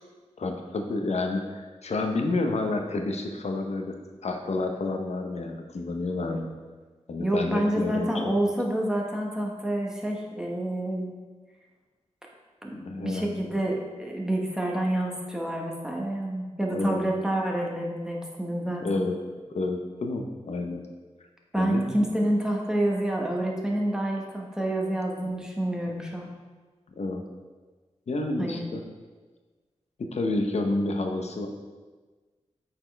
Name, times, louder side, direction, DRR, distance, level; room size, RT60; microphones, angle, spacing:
voice 1, 0.4-3.9 4.2-6.5 7.1-8.1 12.7-13.4 16.7-17.0 18.6-19.2 19.5-20.8 21.5-21.9 25.3-25.4 26.9-27.2 28.1-28.8 30.0-31.5, left 2 dB, 65° left, 4 dB, 0.8 m, -29 dB
voice 2, 7.2-11.1 12.6-19.0 21.5-26.3 28.4-28.6, right 1 dB, 5° right, -1 dB, 1.2 m, -28 dB
8.4 x 4.3 x 3.4 m, 1.3 s
wide cardioid pair, 70°, 12 cm